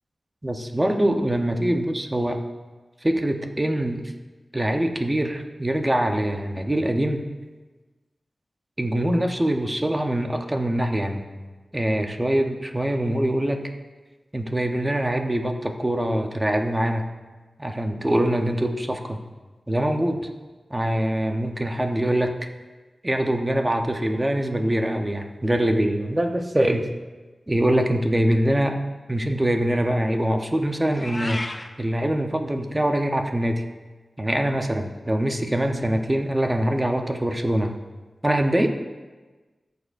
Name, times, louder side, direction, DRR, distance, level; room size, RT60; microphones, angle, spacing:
voice 1, 0.4-2.5 3.0-4.1 4.5-7.3 8.8-11.2 11.7-13.7 14.3-17.0 17.6-19.2 19.7-20.3 20.7-22.5 23.0-26.9 27.5-28.8 29.1-31.4 31.8-33.6 34.2-37.7 38.2-38.7, right 1 dB, 15° right, 4 dB, 0.8 m, -23 dB
Meow, 30.9-31.7, left 2 dB, 30° left, 0.6 m, -32 dB
15.5 x 6.7 x 2.5 m, 1.3 s
wide cardioid pair, 105°, 0 cm